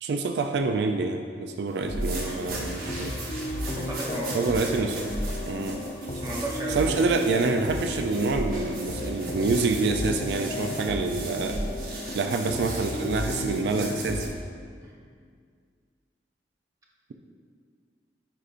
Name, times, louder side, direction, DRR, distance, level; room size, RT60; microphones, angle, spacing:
voice 1, 0.0-3.2 4.3-5.0 5.5-5.8 6.7-11.6 12.1-14.3, right 3 dB, 75° right, 5 dB, 0.3 m, -27 dB
sound 1, 1.8-14.3, left 1 dB, 45° left, 0.7 m, -33 dB
sound 2, 1.8-14.3, right 3 dB, 55° right, 1.0 m, -40 dB
voice 2, 3.7-4.9 6.2-6.9 14.8-14.9, right 1 dB, 20° right, -3 dB, 0.8 m, -35 dB
9.2 x 4.9 x 2.5 m, 2.1 s
head